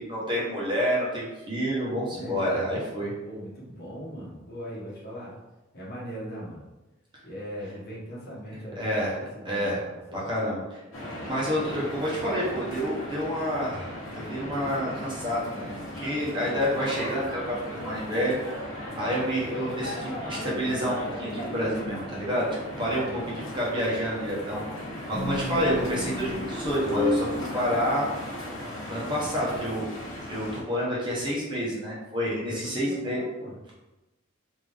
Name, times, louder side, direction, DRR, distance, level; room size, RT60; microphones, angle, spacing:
voice 1, 0.0-3.1 8.8-9.2 9.4-9.8 10.1-10.8 11.2-18.4 19.0-22.5 22.8-24.6 25.1-28.1 28.9-29.9 30.3-33.2, equal, 25° right, -6 dB, 1.1 m, -29 dB
voice 2, 2.1-2.5 3.2-5.3 5.7-6.6 7.2-10.3 22.7-23.6 32.2-33.5, equal, 50° left, -5 dB, 1.1 m, -40 dB
sound 1, 10.9-30.6, left 1 dB, 90° left, 1.0 m, -37 dB
sound 2, 25.1-27.4, left 1 dB, 30° left, 0.8 m, -29 dB
3.6 x 2.9 x 3.4 m, 1.0 s
head